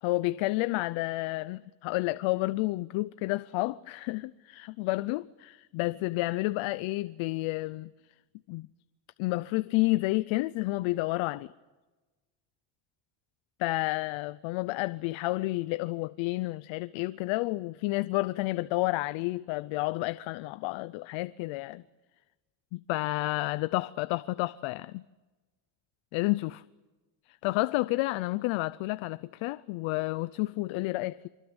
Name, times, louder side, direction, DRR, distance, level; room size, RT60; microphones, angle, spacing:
voice 1, 0.0-7.9 8.5-8.7 9.2-11.5 13.6-21.8 22.7-25.0 26.1-26.6 27.4-31.3, left 20 dB, 80° left, 0.7 m, -30 dB
25.0 x 24.5 x 8.0 m
cardioid pair, 170°, 46 cm